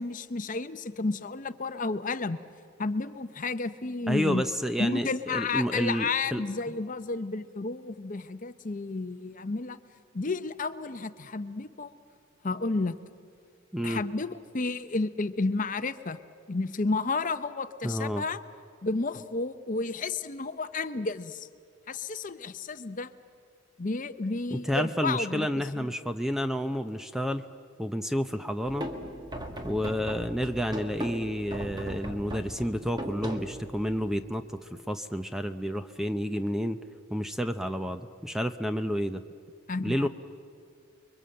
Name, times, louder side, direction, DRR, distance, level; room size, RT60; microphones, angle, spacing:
voice 1, 0.0-2.4 2.8-4.4 4.8-9.8 10.1-11.9 12.4-13.0 13.8-16.2 16.5-18.4 18.8-21.5 21.9-23.1 23.8-25.5 25.8-25.9 39.7-40.1, left 3 dB, 40° left, 11 dB, 0.7 m, -31 dB
voice 2, 4.1-6.4 13.7-14.0 17.8-18.2 24.5-27.5 27.8-28.9 29.6-36.8 37.1-39.2 39.8-40.1, equal, ahead, 9 dB, 0.6 m, -30 dB
sound 1, 28.6-34.2, equal, 20° right, 1.7 m, -38 dB
30.0 x 23.0 x 7.8 m, 2.3 s
head